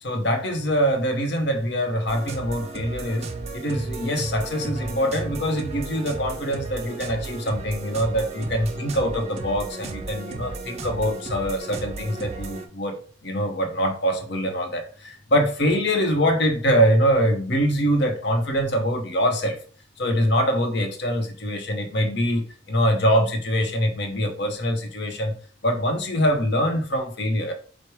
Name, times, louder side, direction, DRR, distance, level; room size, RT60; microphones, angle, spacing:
voice 1, 0.0-13.0 13.2-19.6 20.0-25.3 25.6-27.5, equal, 55° left, 5 dB, 0.8 m, -24 dB
sound 1, 2.1-12.7, right 3 dB, 30° right, 0.4 m, -34 dB
4.6 x 2.2 x 4.6 m, 0.42 s
head